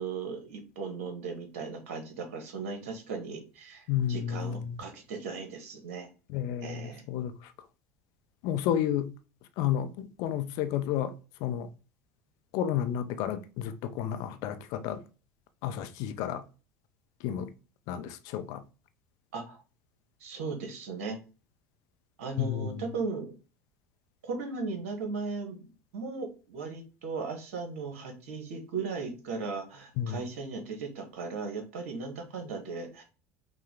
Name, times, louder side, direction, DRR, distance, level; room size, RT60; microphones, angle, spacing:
voice 1, 0.0-6.1 6.6-7.1 19.3-19.6 20.2-21.2 22.2-23.3 24.2-25.6 25.9-33.0, right 4 dB, 65° right, 1.2 m, -37 dB
voice 2, 3.9-4.8 6.3-7.3 8.4-9.1 9.6-11.1 11.4-11.7 12.5-15.0 15.6-16.4 17.2-17.5 17.9-18.6 22.4-22.8 30.0-30.3, left 10 dB, 50° left, 0.5 m, -31 dB
5.6 x 2.2 x 3.7 m
figure-of-eight pair, 70°, 8 cm